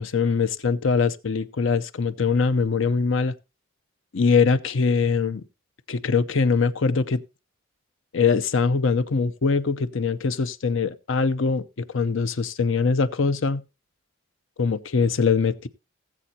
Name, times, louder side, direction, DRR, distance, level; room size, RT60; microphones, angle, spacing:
voice 1, 0.0-3.3 4.1-5.4 5.9-7.2 8.1-13.6 14.6-15.7, left 5 dB, 65° left, 0.6 m, -22 dB
18.5 x 7.6 x 2.8 m
head